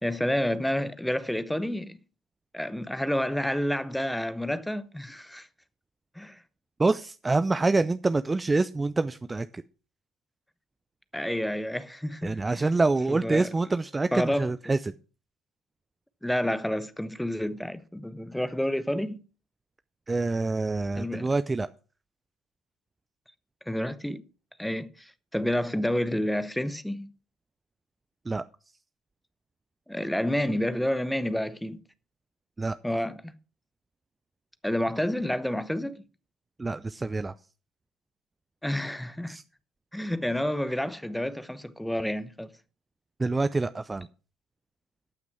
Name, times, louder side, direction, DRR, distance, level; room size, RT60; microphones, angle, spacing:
voice 1, 0.0-2.0 2.5-5.5 6.2-6.4 11.1-12.7 13.1-13.5 14.1-14.5 16.2-19.2 21.0-21.3 23.7-24.2 24.6-27.1 29.9-31.8 32.8-33.3 34.6-36.0 38.6-39.4 39.9-42.5, left 1 dB, 5° left, 0.9 m, -29 dB
voice 2, 6.8-9.6 12.2-14.9 20.1-21.7 28.3-28.4 32.6-32.8 36.6-37.3 39.3-39.4 43.2-44.1, right 3 dB, 20° right, 0.5 m, -26 dB
13.0 x 6.0 x 5.9 m
hypercardioid pair, 60°, 0 cm